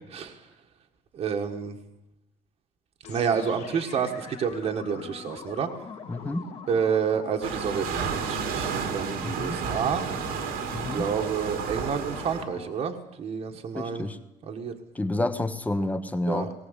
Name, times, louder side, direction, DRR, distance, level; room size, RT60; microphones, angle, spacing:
voice 1, 0.1-0.5 1.1-1.8 3.1-5.7 6.7-10.0 10.9-14.1 14.5-14.7 16.3-16.5, right 6 dB, 45° right, 3 dB, 1.5 m, -29 dB
sound 1, 3.0-12.9, left 6 dB, 50° left, 2.5 m, -43 dB
voice 2, 6.1-6.5 9.2-9.6 10.7-11.1 13.7-14.2 14.9-16.5, left 2 dB, 10° left, 10 dB, 1.1 m, -29 dB
sound 2, 7.4-12.4, right 6 dB, 90° right, 2.7 m, -32 dB
19.5 x 18.5 x 8.1 m, 0.87 s
cardioid pair, 150°, 15 cm